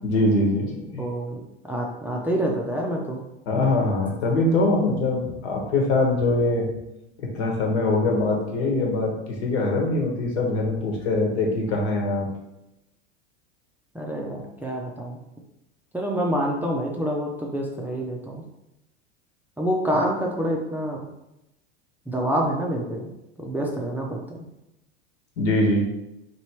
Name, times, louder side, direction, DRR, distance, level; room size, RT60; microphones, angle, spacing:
voice 1, 0.0-1.0 3.5-6.7 7.2-12.3 25.4-25.9, left 2 dB, 70° left, 0 dB, 1.3 m, -23 dB
voice 2, 1.0-3.2 13.9-15.2 15.9-18.4 19.6-21.1 22.1-23.1 23.4-24.2, equal, 5° right, -2 dB, 0.5 m, -27 dB
3.0 x 3.0 x 4.4 m, 0.89 s
hypercardioid pair, 105°, 34 cm